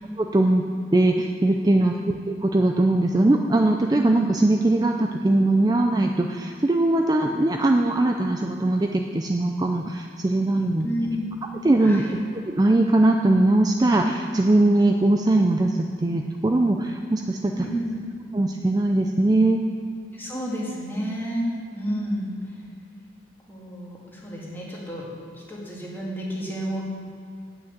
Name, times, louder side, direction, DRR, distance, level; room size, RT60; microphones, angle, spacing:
voice 1, 0.2-0.6 0.9-10.9 11.6-12.0 12.5-17.5 18.3-19.6, right 2 dB, 20° right, 3 dB, 0.4 m, -21 dB
voice 2, 10.8-11.2 11.8-12.1 17.5-17.9 20.1-22.6 23.5-25.1 25.3-26.8, equal, 10° left, -4 dB, 1.8 m, -31 dB
9.0 x 5.9 x 7.9 m, 2.3 s
head